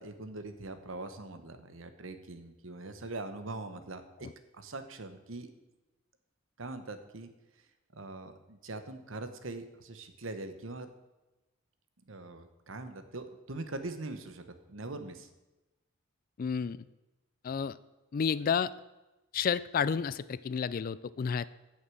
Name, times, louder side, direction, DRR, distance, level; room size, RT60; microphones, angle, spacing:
voice 1, 0.0-4.0 4.5-5.5 6.6-7.3 7.9-10.9 12.1-15.3, right 2 dB, 65° right, 9 dB, 1.1 m, -42 dB
voice 2, 16.4-16.8 17.4-17.8 18.1-18.7 19.3-21.4, left 6 dB, 40° left, 17 dB, 0.3 m, -31 dB
9.1 x 6.5 x 7.7 m, 1.1 s
head